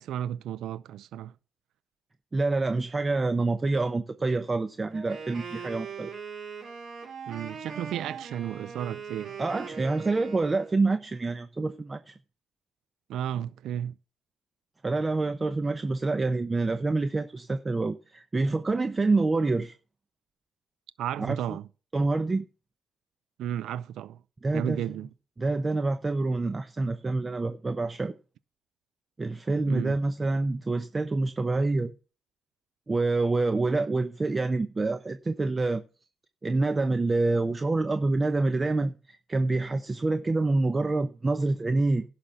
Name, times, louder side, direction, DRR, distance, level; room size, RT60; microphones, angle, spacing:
voice 1, 0.0-1.3 7.3-9.4 13.1-13.9 21.0-21.7 23.4-24.2 24.5-25.1 29.7-30.0, right 10 dB, 80° right, 0.4 m, -33 dB
voice 2, 2.3-6.1 9.4-12.1 14.8-19.7 21.2-21.6 21.9-22.5 24.4-24.8 25.4-28.1 29.2-31.9 32.9-35.8 36.4-42.0, right 3 dB, 25° right, 0.7 m, -27 dB
Wind instrument woodwind instrument, 4.9-10.8, right 6 dB, 60° right, 4.6 m, -40 dB
11.5 x 5.9 x 6.9 m
cardioid pair, 90°, 0 cm